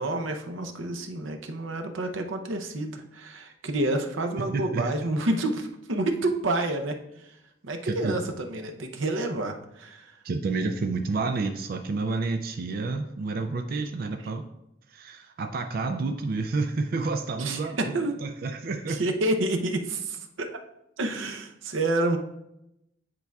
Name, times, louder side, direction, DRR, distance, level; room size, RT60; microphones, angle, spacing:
voice 1, 0.0-7.0 7.6-10.1 17.4-18.2 18.9-20.6 21.0-22.2, right 2 dB, 85° right, 5 dB, 0.7 m, -29 dB
voice 2, 4.4-4.9 7.8-8.2 10.2-14.5 14.9-19.0, right 3 dB, 50° right, 6 dB, 0.4 m, -30 dB
9.7 x 4.5 x 2.3 m, 0.84 s
head